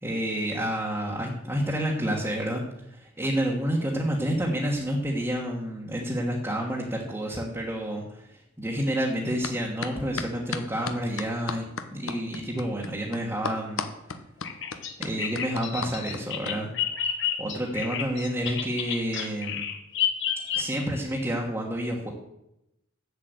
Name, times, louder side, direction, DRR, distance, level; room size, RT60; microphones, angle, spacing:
voice 1, 0.0-8.2 8.6-13.9 15.0-16.7 17.4-19.7 20.5-22.1, equal, 15° right, -3 dB, 1.4 m, -29 dB
sound 1, 9.4-9.5 9.8-16.5, left 5 dB, 85° left, 1.0 m, -34 dB
Bird vocalization bird call bird song, 14.4-21.0, left 8 dB, 60° left, 1.4 m, -30 dB
8.0 x 7.6 x 8.0 m, 0.86 s
head